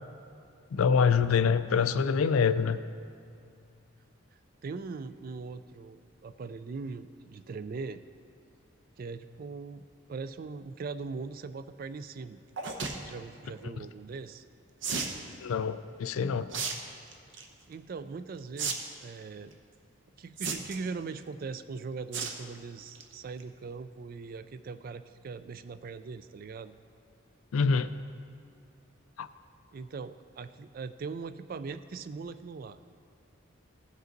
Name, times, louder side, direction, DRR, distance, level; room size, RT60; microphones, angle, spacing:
voice 1, 0.7-2.8 13.6-13.7 15.4-16.5 27.5-27.9 29.2-29.3, left 6 dB, 85° left, 13 dB, 0.4 m, -25 dB
voice 2, 4.6-8.0 9.0-12.4 13.0-14.4 17.7-19.6 20.2-26.7 29.7-32.8, right 4 dB, 45° right, 13 dB, 0.3 m, -40 dB
sound 1, 12.6-13.0 14.8-15.2 16.5-16.7 17.1-17.4 18.6-18.7 19.0-19.1 20.4-20.9 22.1-22.4 22.8-23.0 23.4-23.5 23.7-23.8, right 5 dB, 60° right, 0.8 m, -33 dB
16.0 x 5.4 x 3.9 m, 2.5 s
head